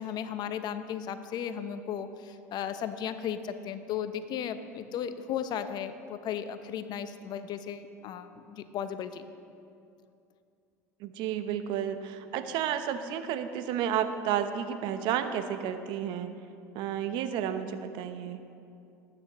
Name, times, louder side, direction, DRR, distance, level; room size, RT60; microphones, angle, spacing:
voice 1, 0.0-9.3, left 8 dB, 50° left, 10 dB, 0.8 m, -35 dB
voice 2, 11.0-16.4 16.7-18.4, right 9 dB, 60° right, 9 dB, 0.8 m, -31 dB
20.0 x 8.7 x 3.0 m, 2.5 s
hypercardioid pair, 75°, 9 cm